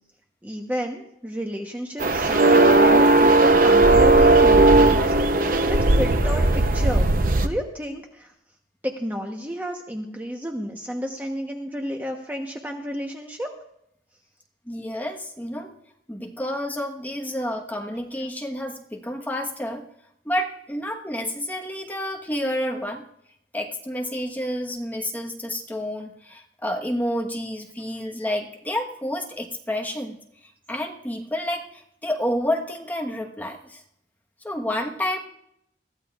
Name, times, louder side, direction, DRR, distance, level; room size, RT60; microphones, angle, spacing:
voice 1, 0.4-5.3 5.7-7.1 7.4-8.3 8.8-13.5, equal, 10° right, 1 dB, 1.0 m, -31 dB
sound 1, 2.0-7.5, right 2 dB, 50° right, 0.7 m, -16 dB
voice 2, 14.7-15.7 16.1-19.9 20.2-23.0 23.5-30.2 30.4-33.8 34.4-35.2, left 1 dB, 10° left, 1 dB, 1.2 m, -29 dB
21.5 x 15.0 x 2.4 m, 0.76 s
head